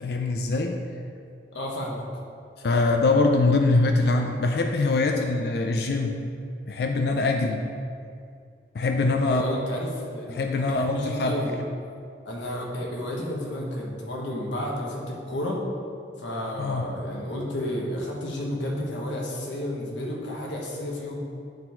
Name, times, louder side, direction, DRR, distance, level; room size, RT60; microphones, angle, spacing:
voice 1, 0.0-0.9 2.6-6.2 6.7-7.6 8.7-9.6 10.3-11.4 16.6-16.9, left 3 dB, 60° left, 4 dB, 0.4 m, -23 dB
voice 2, 1.5-2.0 9.2-10.4 10.7-11.5 12.2-15.6 16.2-21.2, left 1 dB, 85° left, -2 dB, 1.3 m, -31 dB
8.3 x 3.9 x 4.4 m, 2.4 s
head